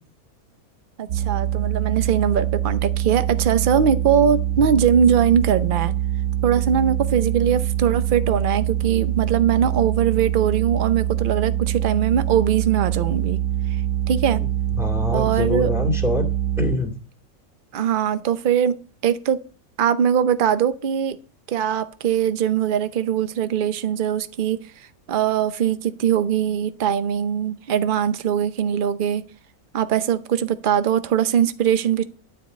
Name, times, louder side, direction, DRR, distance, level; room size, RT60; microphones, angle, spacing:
voice 1, 1.0-5.9 6.4-13.4 14.1-14.4 15.1-15.7 17.7-18.8 19.0-19.4 19.8-21.2 21.5-24.6 25.1-29.2 29.7-32.0, right 8 dB, 50° right, 12 dB, 0.7 m, -21 dB
sound 1, 1.1-16.8, right 12 dB, 75° right, 1.2 m, -24 dB
voice 2, 14.8-16.2 16.6-16.9, left 2 dB, ahead, 2 dB, 2.2 m, -24 dB
12.0 x 4.7 x 8.2 m, 0.39 s
omnidirectional pair, 1.6 m